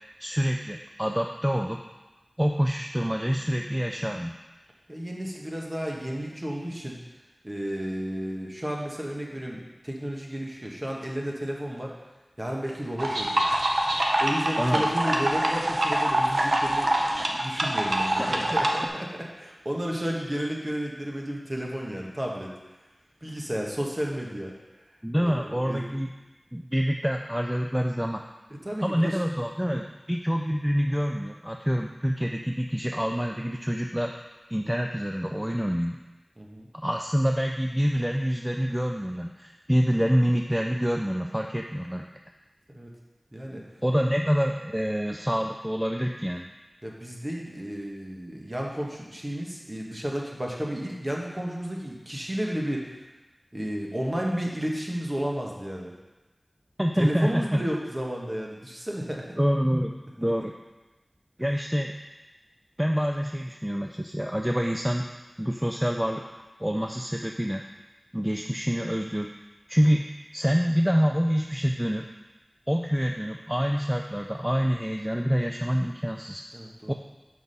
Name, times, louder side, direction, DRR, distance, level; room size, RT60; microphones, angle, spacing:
voice 1, 0.2-1.8 2.4-4.4 14.6-14.9 18.2-18.3 25.0-26.1 26.5-28.2 28.8-34.1 34.5-36.0 36.7-42.0 43.8-46.5 56.8-57.6 59.4-60.5 61.4-61.9 62.8-65.1 65.4-66.2 66.6-67.6 68.1-69.3 69.7-70.1 70.3-72.1 72.7-76.4 76.9-77.0, equal, 5° right, 2 dB, 0.4 m, -26 dB
voice 2, 4.9-7.0 7.4-11.9 12.4-13.4 14.2-22.5 23.2-24.5 25.2-25.8 28.6-29.2 36.4-36.7 42.7-42.9 43.3-43.7 46.8-52.9 53.5-55.9 57.0-59.3 76.5-76.9, equal, 30° right, -1 dB, 1.3 m, -32 dB
sound 1, 13.0-18.9, right 1 dB, 80° right, 0.8 m, -25 dB
6.0 x 4.8 x 5.4 m, 1.1 s
wide cardioid pair, 55°, 0 cm